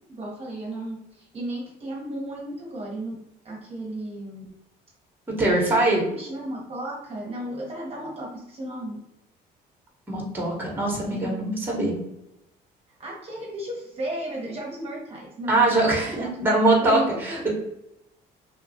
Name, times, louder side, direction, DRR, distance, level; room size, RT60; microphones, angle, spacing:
voice 1, 0.1-3.1 3.4-4.5 5.6-9.0 11.1-11.5 13.0-15.7 16.1-17.5, right 1 dB, 35° right, -2 dB, 0.8 m, -34 dB
voice 2, 5.4-6.0 10.1-11.9 15.5-17.5, right 2 dB, 10° right, -2 dB, 0.9 m, -22 dB
2.9 x 2.3 x 2.6 m, 0.86 s
cardioid pair, 110°, 17 cm